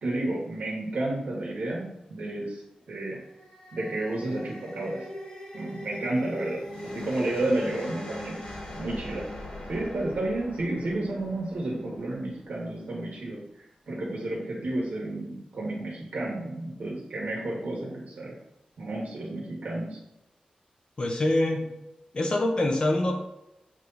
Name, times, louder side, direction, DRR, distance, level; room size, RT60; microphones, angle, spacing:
voice 1, 0.0-2.6 2.9-3.2 3.7-5.1 5.5-8.4 8.8-9.3 9.7-13.4 13.9-18.3 18.8-20.0, right 2 dB, 90° right, -4 dB, 1.7 m, -31 dB
sound 1, 3.1-12.4, left 1 dB, 55° left, 2.3 m, -41 dB
voice 2, 21.0-21.7 22.1-23.2, left 1 dB, 40° left, 2 dB, 0.9 m, -25 dB
7.3 x 3.3 x 4.1 m, 0.89 s
wide cardioid pair, 150°, 2 cm